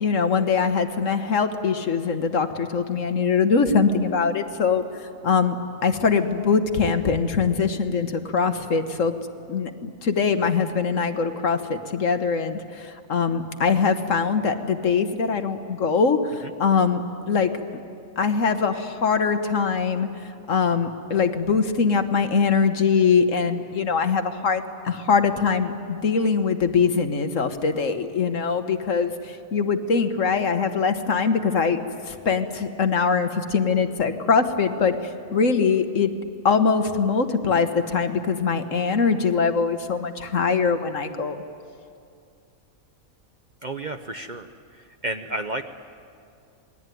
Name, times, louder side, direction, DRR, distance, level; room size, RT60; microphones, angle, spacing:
voice 1, 0.0-4.8 5.2-5.6 5.8-9.1 9.5-17.0 17.3-17.5 18.2-20.1 20.5-35.0 35.3-36.1 36.5-41.4, left 5 dB, 60° left, 8 dB, 1.6 m, -22 dB
voice 2, 43.6-44.5 44.7-45.6, right 2 dB, 40° right, 7 dB, 0.8 m, -31 dB
28.0 x 20.5 x 9.3 m, 2.4 s
omnidirectional pair, 1.5 m